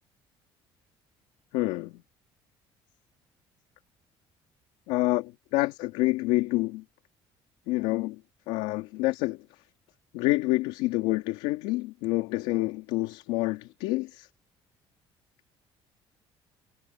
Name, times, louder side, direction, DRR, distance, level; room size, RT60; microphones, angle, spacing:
voice 1, 1.5-1.9 4.9-6.8 7.7-8.2 8.5-9.4 10.1-14.3, left 20 dB, 90° left, 2.2 m, -27 dB
supercardioid pair, 95°, 11 cm